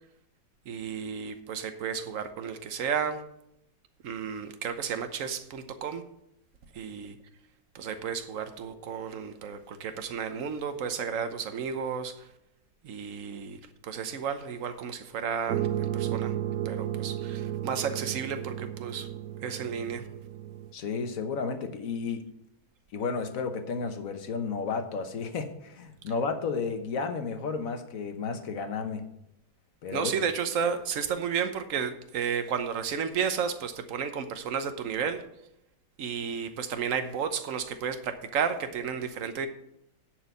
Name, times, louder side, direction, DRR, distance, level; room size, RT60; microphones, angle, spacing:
voice 1, 0.7-3.2 4.0-6.0 6.7-7.2 7.7-12.3 12.8-16.3 16.6-19.1 19.4-20.1 29.9-35.2 36.0-39.5, right 7 dB, 55° right, 8 dB, 1.0 m, -32 dB
sound 1, 15.5-20.7, right 11 dB, 85° right, 0.8 m, -33 dB
voice 2, 20.7-22.3 22.9-29.1 29.8-30.1, left 5 dB, 50° left, 7 dB, 1.2 m, -32 dB
10.5 x 4.7 x 8.1 m, 0.79 s
omnidirectional pair, 2.2 m